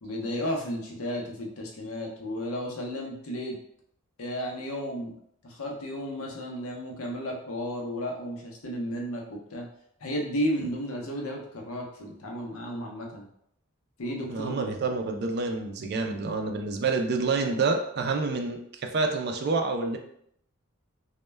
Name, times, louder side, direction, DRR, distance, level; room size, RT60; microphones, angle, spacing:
voice 1, 0.0-3.6 4.2-5.1 5.4-9.7 10.0-13.3 14.0-14.6, equal, 85° left, 0 dB, 0.6 m, -33 dB
voice 2, 14.3-20.0, right 3 dB, 50° right, 4 dB, 0.3 m, -28 dB
2.1 x 2.1 x 3.2 m, 0.69 s
head